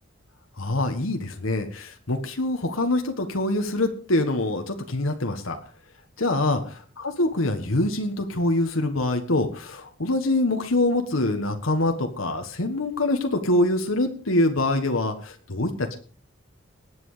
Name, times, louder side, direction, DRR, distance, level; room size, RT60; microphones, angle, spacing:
voice 1, 0.6-5.6 6.2-6.6 7.0-16.0, left 2 dB, 90° left, 5 dB, 1.6 m, -24 dB
19.5 x 7.9 x 5.1 m, 0.41 s
head